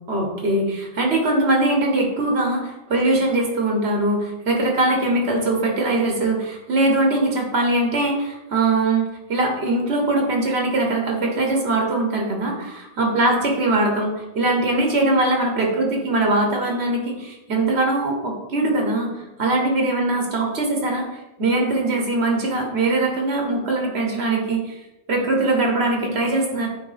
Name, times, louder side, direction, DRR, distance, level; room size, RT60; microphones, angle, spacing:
voice 1, 0.1-19.1 19.4-24.8 25.1-26.7, right 2 dB, 90° right, 0 dB, 1.4 m, -21 dB
9.1 x 3.3 x 3.3 m, 0.99 s
omnidirectional pair, 1.1 m